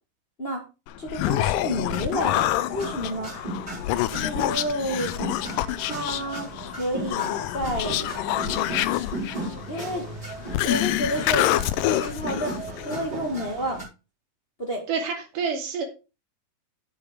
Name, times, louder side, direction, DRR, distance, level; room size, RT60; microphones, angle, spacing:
Human voice, 0.9-13.1, left 14 dB, 80° left, 2.2 m, -27 dB
voice 1, 1.0-2.4 2.7-3.3 4.1-5.1 5.8-8.1 9.7-10.0 10.6-11.5 11.9-12.5 12.8-13.8 14.6-14.8, equal, 35° left, 2 dB, 1.0 m, -30 dB
sound 1, 1.9-13.8, right 1 dB, 10° right, 5.4 m, -36 dB
voice 2, 14.9-15.9, right 5 dB, 75° right, 2 dB, 3.8 m, -28 dB
8.8 x 6.8 x 5.0 m, 0.30 s
omnidirectional pair, 3.8 m